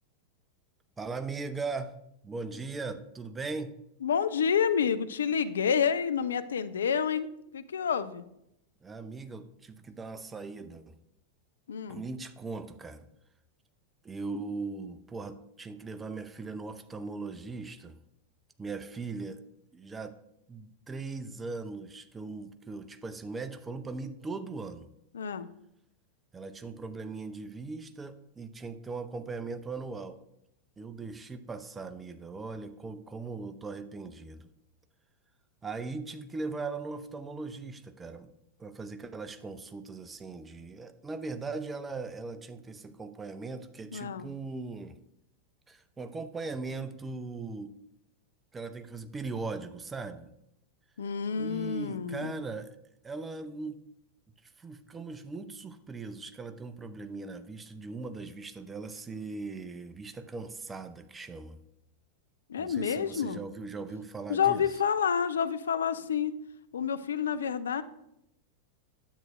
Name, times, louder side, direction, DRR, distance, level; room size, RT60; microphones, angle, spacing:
voice 1, 1.0-2.0 2.2-3.8 8.8-10.8 11.9-13.1 14.0-18.0 18.6-19.4 19.7-20.2 20.5-24.9 26.3-30.2 30.8-34.5 35.6-38.3 38.6-45.0 45.7-47.8 48.5-50.3 51.3-52.8 53.0-53.8 54.6-61.6 62.5-64.7, right 3 dB, 15° right, 10 dB, 0.5 m, -39 dB
voice 2, 4.0-8.2 11.7-12.0 25.1-25.5 43.9-44.3 51.0-52.3 62.5-63.4 64.3-66.3 66.7-67.8, left 7 dB, 65° left, 13 dB, 0.4 m, -29 dB
10.0 x 7.5 x 2.5 m, 0.79 s
figure-of-eight pair, 90°, 0 cm